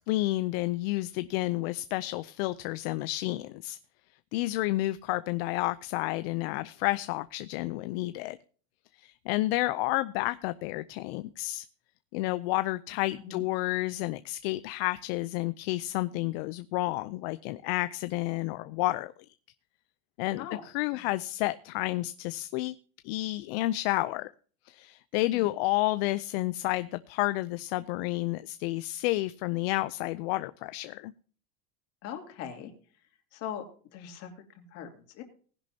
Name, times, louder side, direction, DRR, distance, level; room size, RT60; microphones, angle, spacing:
voice 1, 0.1-3.8 4.3-8.4 8.9-11.7 12.1-19.1 20.2-22.7 23.0-24.3 24.6-31.1, left 18 dB, 70° left, 14 dB, 0.6 m, -30 dB
voice 2, 32.0-32.7 33.3-33.6 33.9-35.2, left 9 dB, 50° left, 4 dB, 2.8 m, -40 dB
18.5 x 10.5 x 2.8 m, 0.43 s
cardioid pair, 155°, 31 cm